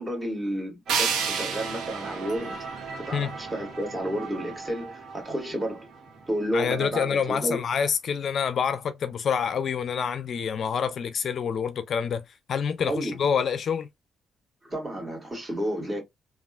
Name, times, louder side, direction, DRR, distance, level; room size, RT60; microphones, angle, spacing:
voice 1, 0.0-2.6 3.0-5.9 6.3-7.6 12.8-13.2 14.6-16.0, equal, 25° right, 1.9 m, -31 dB
sound 1, 0.9-7.6, right 4 dB, 65° right, 1.0 m, -40 dB
sound 2, 0.9-3.9, right 6 dB, 85° right, 0.8 m, -31 dB
voice 2, 6.5-13.9, left 7 dB, 60° left, 0.4 m, -27 dB
3.4 x 2.3 x 2.3 m
supercardioid pair, 70°, 0 cm